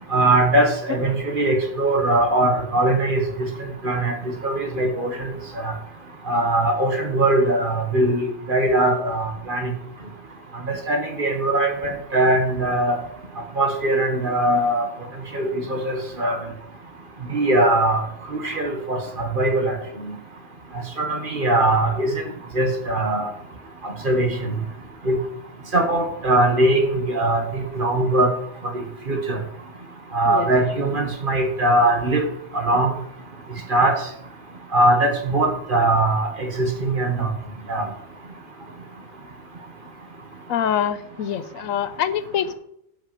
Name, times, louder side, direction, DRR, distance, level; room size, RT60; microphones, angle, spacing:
voice 1, 0.1-3.2 3.8-4.1 4.4-5.3 5.6-5.7 6.3-9.7 10.6-13.0 13.6-14.8 15.3-16.4 17.3-18.0 18.3-19.8 21.0-22.1 22.5-23.3 23.8-24.3 25.0-25.2 25.7-28.3 29.1-29.4 30.1-32.2 32.5-32.9 33.7-34.0 34.7-37.3 37.7-37.8, right 1 dB, 40° right, 4 dB, 1.5 m, -21 dB
voice 2, 40.5-42.5, left 9 dB, 85° left, 13 dB, 1.1 m, -25 dB
8.0 x 5.8 x 5.3 m, 0.74 s
omnidirectional pair, 1.4 m